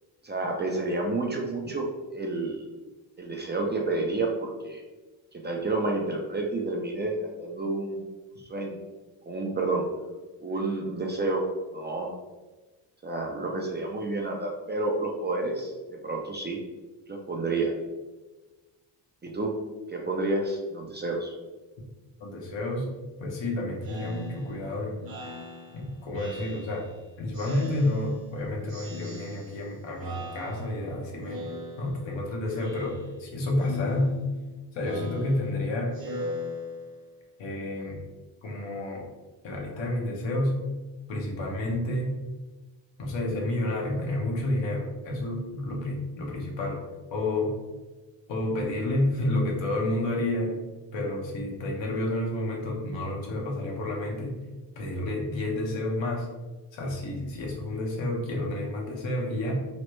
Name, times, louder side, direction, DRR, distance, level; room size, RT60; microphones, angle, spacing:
voice 1, 0.2-2.7 3.2-4.8 5.4-7.1 7.4-8.1 8.4-8.8 9.3-9.9 10.4-11.4 11.7-12.1 13.0-15.7 16.0-16.6 17.1-17.7 19.2-19.5 19.9-21.3, right 2 dB, 20° right, 0 dB, 0.5 m, -29 dB
voice 2, 22.2-22.9 23.2-25.0 25.7-26.9 27.2-31.4 31.8-34.1 34.7-36.0 37.4-38.0 38.4-39.1 39.4-40.5 41.1-42.1 43.0-46.8 47.1-47.6 48.3-50.6 50.9-54.4 54.8-56.3 56.7-59.5, left 1 dB, 70° left, -1 dB, 1.0 m, -30 dB
Speech synthesizer, 23.8-27.0 27.3-28.4 28.7-29.7 30.0-30.9 31.2-32.1 32.5-33.3 33.6-37.1, left 2 dB, 50° right, 1.0 m, -39 dB
3.1 x 2.1 x 3.1 m, 1.2 s
supercardioid pair, 65°, 47 cm